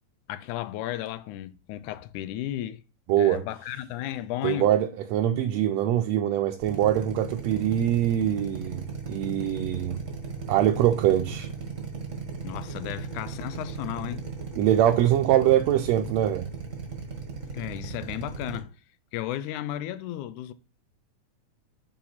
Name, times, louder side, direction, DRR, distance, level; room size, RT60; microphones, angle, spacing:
voice 1, 0.3-2.8 3.2-4.7 12.4-14.2 17.5-18.7 19.1-20.5, left 13 dB, 85° left, 2.1 m, -34 dB
voice 2, 3.1-3.4 4.4-10.0 10.5-11.5 14.6-16.5, right 11 dB, 75° right, 1.6 m, -23 dB
Drill, 6.6-18.6, right 6 dB, 40° right, 1.1 m, -36 dB
8.7 x 4.0 x 4.2 m
omnidirectional pair, 3.4 m